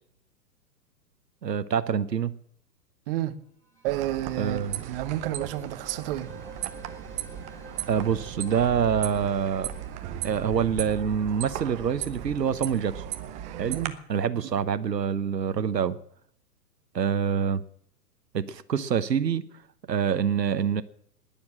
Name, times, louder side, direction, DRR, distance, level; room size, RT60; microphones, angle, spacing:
voice 1, 1.4-2.3 4.4-4.8 7.9-9.7 10.2-13.0 13.6-13.8 14.1-16.0 16.9-17.6 18.3-19.4 19.9-20.8, right 7 dB, 80° right, 1.0 m, -26 dB
voice 2, 3.1-3.4 3.8-6.3 13.7-13.9, right 14 dB, 35° right, 1.0 m, -30 dB
sound 1, 3.6-12.4, right 1 dB, 5° left, 3.7 m, -50 dB
sound 2, 3.8-13.9, right 11 dB, 15° right, 0.6 m, -36 dB
20.0 x 7.1 x 7.5 m
figure-of-eight pair, 120°, 49 cm